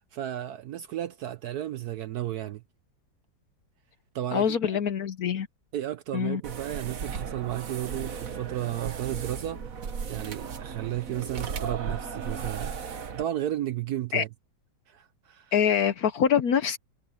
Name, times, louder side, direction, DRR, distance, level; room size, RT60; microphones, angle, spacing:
voice 1, 0.1-2.6 4.1-4.6 5.7-9.7 10.1-12.7 13.1-14.3 14.9-15.5, right 12 dB, 65° right, 1.0 m, -33 dB
voice 2, 4.3-5.5 6.1-6.4 14.1-14.2 15.5-16.8, left 8 dB, 60° left, 1.1 m, -24 dB
sound 1, 6.4-13.2, right 6 dB, 50° right, 1.5 m, -36 dB
omnidirectional pair, 2.1 m